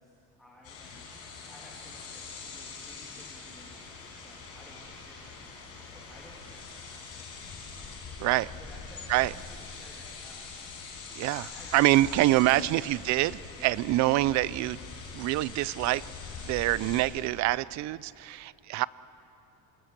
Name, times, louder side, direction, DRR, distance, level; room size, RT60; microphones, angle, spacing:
voice 1, 0.0-7.5 8.6-10.5 11.4-11.7 12.0-13.1 13.4-13.7, equal, ahead, -5 dB, 2.5 m, -54 dB
sound 1, 0.6-17.0, left 5 dB, 45° left, 5.3 m, -43 dB
voice 2, 11.7-14.8 15.1-16.0 16.4-18.9, right 17 dB, 55° right, 20 dB, 0.5 m, -25 dB
26.0 x 21.0 x 6.7 m, 3.0 s
cardioid pair, 180°, 34 cm